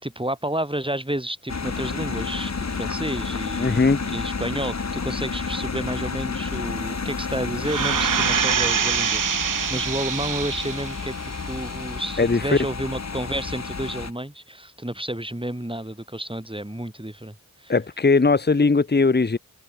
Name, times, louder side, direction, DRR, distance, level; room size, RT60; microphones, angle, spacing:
voice 1, 0.0-17.7, right 1 dB, 15° right, 4.6 m, -31 dB
sound 1, 1.5-14.1, left 4 dB, 60° left, 1.0 m, -30 dB
voice 2, 3.6-4.0 12.2-12.6 17.7-19.4, left 4 dB, 35° left, 0.8 m, -19 dB
sound 2, 7.6-11.0 11.5-11.6, right 7 dB, 85° right, 0.6 m, -24 dB
wide cardioid pair, 45°, 31 cm